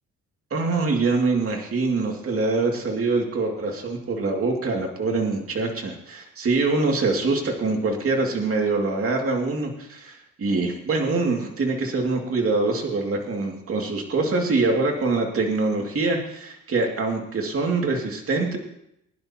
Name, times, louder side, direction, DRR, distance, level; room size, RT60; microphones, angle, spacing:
voice 1, 0.5-18.6, right 3 dB, 50° right, 1 dB, 2.5 m, -24 dB
21.0 x 11.0 x 3.0 m, 0.77 s
cardioid pair, 90°, 30 cm